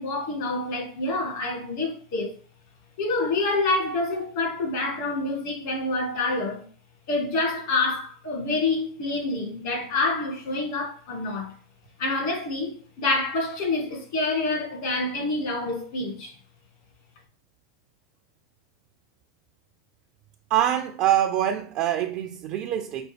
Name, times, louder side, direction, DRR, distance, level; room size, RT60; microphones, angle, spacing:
voice 1, 0.0-2.4 3.0-6.6 7.1-11.5 12.0-16.3, left 2 dB, 60° left, 1.6 m, -27 dB
voice 2, 20.5-23.1, right 11 dB, 50° right, 0.4 m, -24 dB
5.1 x 2.2 x 3.3 m
hypercardioid pair, 100°, 2 cm